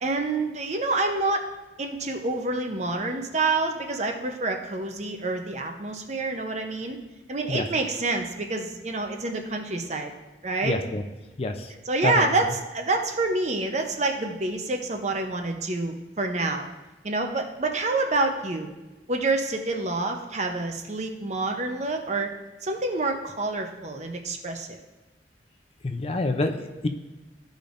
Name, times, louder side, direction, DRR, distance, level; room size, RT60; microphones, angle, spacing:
voice 1, 0.0-1.5 1.8-7.0 7.3-10.1 10.4-10.8 11.9-16.7 17.0-18.7 19.1-22.3 22.6-24.8, right 2 dB, 40° right, 4 dB, 0.7 m, -27 dB
voice 2, 10.6-11.0 11.4-11.7 12.0-12.3 25.8-26.9, left 2 dB, 35° left, 6 dB, 0.5 m, -27 dB
14.5 x 5.1 x 2.6 m, 1.1 s
head